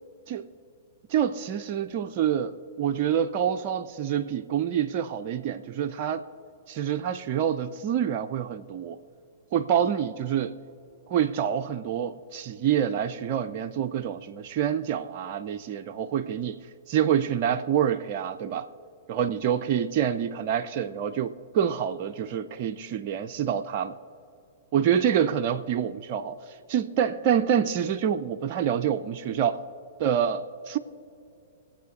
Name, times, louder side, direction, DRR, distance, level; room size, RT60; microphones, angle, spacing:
voice 1, 1.1-6.2 6.7-9.0 9.5-10.6 11.1-16.6 16.9-18.7 19.1-24.0 24.7-29.6 30.0-30.8, right 9 dB, 40° right, 0.4 m, -27 dB
24.5 x 8.4 x 2.7 m
figure-of-eight pair, 105°, 0 cm